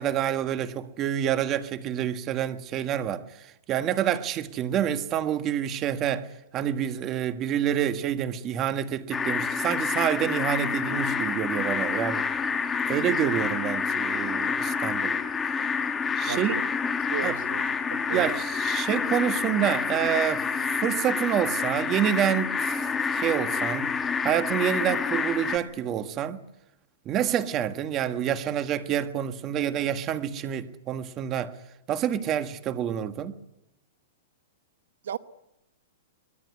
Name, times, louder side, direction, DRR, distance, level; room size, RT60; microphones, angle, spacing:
voice 1, 0.0-6.3 6.5-12.2 12.8-15.2 16.2-16.5 17.2-17.4 18.1-22.9 23.1-23.9 24.2-26.4 27.0-31.5 31.9-33.3, right 10 dB, 25° right, 1.5 m, -28 dB
sound 1, 9.1-25.6, left 5 dB, 15° left, 1.6 m, -28 dB
voice 2, 16.3-16.6 17.1-18.3 35.0-35.2, right 9 dB, 75° right, 1.1 m, -35 dB
23.5 x 20.5 x 9.7 m
hypercardioid pair, 150°, 0 cm